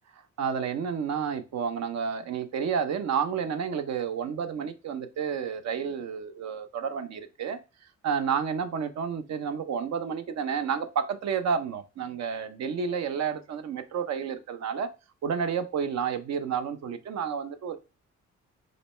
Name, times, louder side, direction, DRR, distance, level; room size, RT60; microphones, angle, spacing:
voice 1, 0.4-7.6 8.0-14.9 15.2-17.8, right 7 dB, 65° right, 0.6 m, -30 dB
5.0 x 2.2 x 4.2 m
cardioid pair, 90°, 29 cm